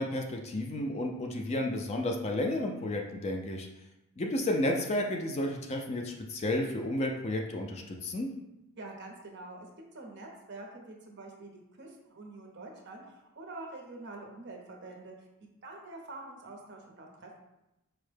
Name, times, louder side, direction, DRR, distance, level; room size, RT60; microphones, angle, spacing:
voice 1, 0.0-3.7 4.2-8.3, left 1 dB, 30° left, 1 dB, 0.3 m, -32 dB
voice 2, 8.8-9.7 9.9-11.5 11.8-15.3 15.6-17.4, right 2 dB, 50° right, 1 dB, 0.6 m, -46 dB
4.5 x 2.1 x 3.3 m, 0.91 s
head